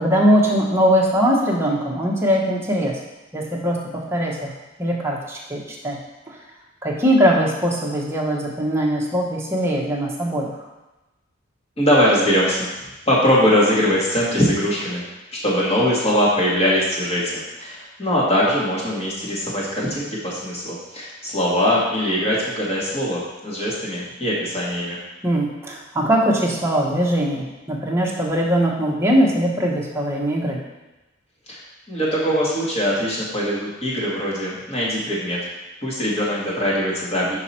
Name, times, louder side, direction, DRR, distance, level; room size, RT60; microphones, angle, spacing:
voice 1, 0.0-2.9 3.3-4.5 4.8-6.0 6.3-6.4 6.8-10.5 25.2-30.6, equal, 15° right, -2 dB, 1.0 m, -21 dB
voice 2, 11.8-12.7 13.1-15.0 15.4-25.0 31.5-31.6 31.9-35.4 35.8-37.4, equal, 30° left, -6 dB, 1.8 m, -21 dB
5.8 x 5.1 x 4.3 m, 1.0 s
head